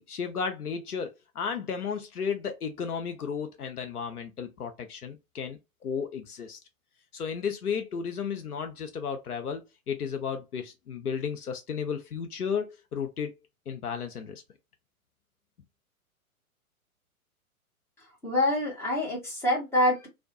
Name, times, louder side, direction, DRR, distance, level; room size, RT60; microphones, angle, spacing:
voice 1, 0.0-6.6 7.1-13.3 13.7-14.4, left 6 dB, 85° left, 0.6 m, -33 dB
voice 2, 18.2-20.1, left 1 dB, 5° left, 0.6 m, -26 dB
2.7 x 2.1 x 2.7 m
figure-of-eight pair, 115°, 44 cm